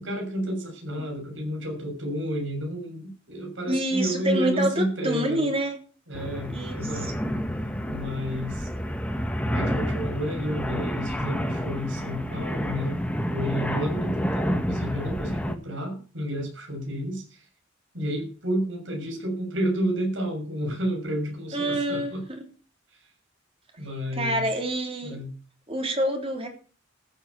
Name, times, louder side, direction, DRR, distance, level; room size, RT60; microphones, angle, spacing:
voice 1, 0.0-5.5 6.1-7.1 7.9-8.7 9.4-13.0 13.3-17.5 17.9-22.2 22.9-23.0 23.8-24.5 25.0-25.3, equal, 70° right, 2 dB, 6.8 m, -31 dB
voice 2, 3.7-5.8 6.5-7.1 21.5-22.5 24.1-25.2 25.7-26.5, right 1 dB, 30° right, 3 dB, 3.6 m, -27 dB
sound 1, 6.1-15.6, equal, 5° left, 1.4 m, -29 dB
14.0 x 8.7 x 8.3 m, 0.39 s
head